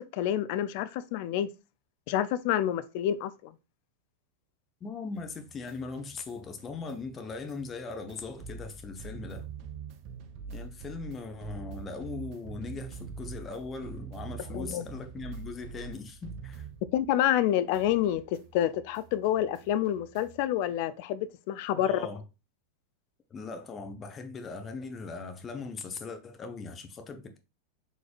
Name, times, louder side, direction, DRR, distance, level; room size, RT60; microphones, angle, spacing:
voice 1, 0.1-1.5 2.1-3.5 14.5-14.9 16.9-22.0, left 11 dB, 55° left, 0.3 m, -28 dB
voice 2, 4.8-9.5 10.5-16.7 21.7-22.2 23.3-27.4, left 4 dB, 25° left, 0.6 m, -39 dB
sound 1, 5.2-17.4 17.7-20.5, right 6 dB, 50° right, 0.5 m, -45 dB
3.9 x 3.1 x 2.4 m
hypercardioid pair, 95°, 0 cm